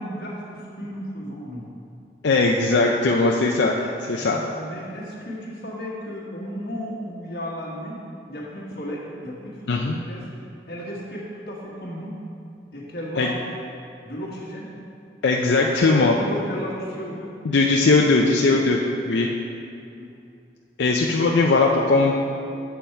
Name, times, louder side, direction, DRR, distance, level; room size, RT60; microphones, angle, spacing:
voice 1, 0.0-1.7 4.1-8.0 8.3-10.2 10.7-12.2 12.7-13.3 14.0-14.7 15.9-17.3 19.1-19.3 19.9-20.1, equal, 60° left, -4 dB, 1.6 m, -34 dB
voice 2, 2.2-4.4 9.7-9.9 13.2-13.3 15.2-16.1 17.4-18.8 19.1-19.3 20.8-22.1, left 3 dB, 90° left, 0 dB, 0.5 m, -19 dB
7.3 x 7.0 x 4.4 m, 2.5 s
head